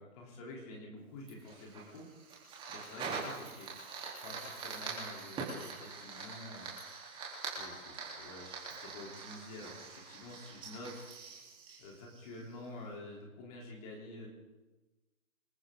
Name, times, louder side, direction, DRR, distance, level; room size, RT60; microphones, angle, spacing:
voice 1, 0.0-2.1 2.7-3.8 4.2-7.1 7.5-11.1 11.8-14.3, left 2 dB, 25° left, -1 dB, 3.6 m, -49 dB
Fire, 1.3-12.7, right 4 dB, 10° right, 3.5 m, -44 dB
26.5 x 14.0 x 3.9 m, 1.2 s
hypercardioid pair, 150°, 42 cm